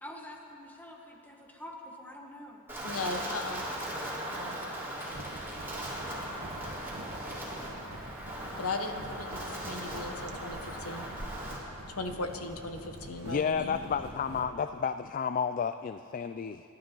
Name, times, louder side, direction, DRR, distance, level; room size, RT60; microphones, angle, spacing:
voice 1, 0.0-2.7, left 1 dB, 10° left, 0 dB, 1.6 m, -46 dB
Wind, 2.7-11.6, right 1 dB, 10° right, 3.8 m, -38 dB
voice 2, 2.8-3.6 4.3-4.6 8.6-11.1 11.9-13.8, left 3 dB, 85° left, 5 dB, 1.2 m, -37 dB
sound 1, 5.1-14.4, right 1 dB, 70° right, 1.5 m, -46 dB
voice 3, 13.2-16.6, left 6 dB, 40° left, 11 dB, 0.3 m, -31 dB
29.5 x 12.5 x 3.9 m, 2.8 s
head